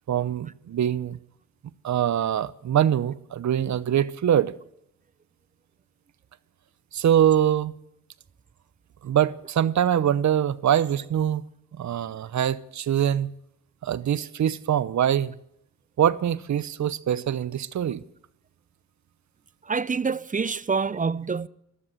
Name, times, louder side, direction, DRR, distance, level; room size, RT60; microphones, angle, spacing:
voice 1, 0.1-1.2 1.8-4.5 6.9-7.7 9.0-11.4 11.8-13.3 13.8-15.3 16.0-18.0, right 10 dB, 60° right, 0.9 m, -23 dB
voice 2, 19.7-21.5, right 5 dB, 25° right, 0.6 m, -26 dB
14.0 x 13.0 x 7.9 m
cardioid pair, 70°, 32 cm